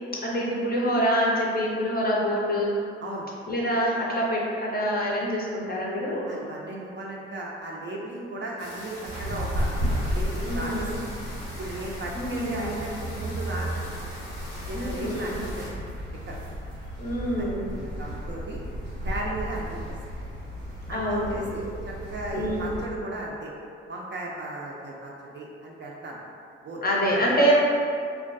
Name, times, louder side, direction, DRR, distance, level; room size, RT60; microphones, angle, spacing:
voice 1, 0.2-2.7 3.5-6.3 10.4-11.0 12.2-12.7 14.7-15.4 17.0-17.8 20.9-21.6 22.3-22.8 26.8-27.5, equal, 30° left, -3 dB, 0.6 m, -26 dB
voice 2, 6.3-9.7 10.1-10.9 11.6-14.0 14.7-15.7 16.3-16.4 17.4-18.6 19.0-19.9 20.9-23.5 23.9-26.2 26.6-26.8, right 2 dB, 35° right, -3 dB, 0.4 m, -36 dB
sound 1, 8.6-15.7, left 1 dB, 90° left, 0.6 m, -42 dB
sound 2, 9.0-22.8, equal, 90° right, 0.7 m, -33 dB
2.3 x 2.2 x 2.5 m, 2.4 s
hypercardioid pair, 40°, 31 cm